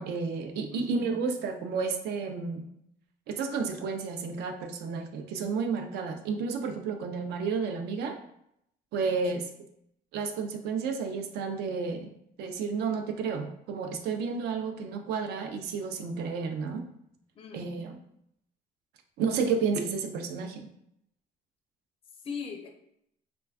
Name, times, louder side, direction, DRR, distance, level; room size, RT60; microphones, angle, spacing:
voice 1, 0.0-2.6 3.3-8.2 8.9-9.4 10.1-16.8 17.5-18.0 19.2-20.7, right 5 dB, 75° right, 5 dB, 0.4 m, -31 dB
voice 2, 0.7-1.1 9.3-9.4 17.4-17.8 22.1-22.7, left 6 dB, 35° left, 2 dB, 0.4 m, -40 dB
3.2 x 2.2 x 2.3 m, 0.74 s
cardioid pair, 110°, 17 cm